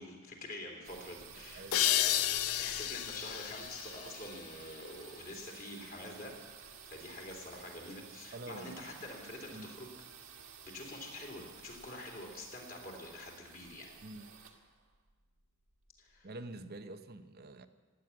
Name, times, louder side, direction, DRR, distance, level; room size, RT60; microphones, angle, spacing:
voice 1, 0.0-6.3 6.6-9.9 10.6-13.9 16.0-16.3, left 1 dB, 40° left, 0 dB, 3.3 m, -47 dB
sound 1, 0.8-16.5, right 7 dB, 70° right, 1.8 m, -53 dB
voice 2, 1.5-1.9 8.3-8.8 9.5-9.7 14.0-14.3 16.2-17.7, right 2 dB, 45° right, 10 dB, 0.8 m, -46 dB
sound 2, 1.7-5.1, left 13 dB, 75° left, 0.5 m, -33 dB
16.5 x 9.3 x 9.6 m, 1.4 s
head